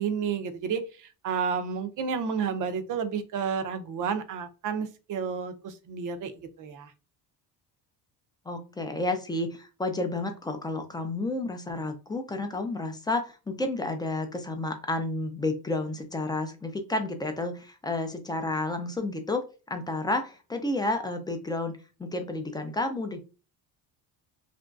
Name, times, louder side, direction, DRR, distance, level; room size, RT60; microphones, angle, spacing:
voice 1, 0.0-6.3 6.6-6.9, right 6 dB, 50° right, 9 dB, 0.5 m, -31 dB
voice 2, 8.5-23.2, left 2 dB, 10° left, 6 dB, 0.3 m, -31 dB
2.9 x 2.6 x 2.3 m, 0.32 s
cardioid pair, 140°, 40 cm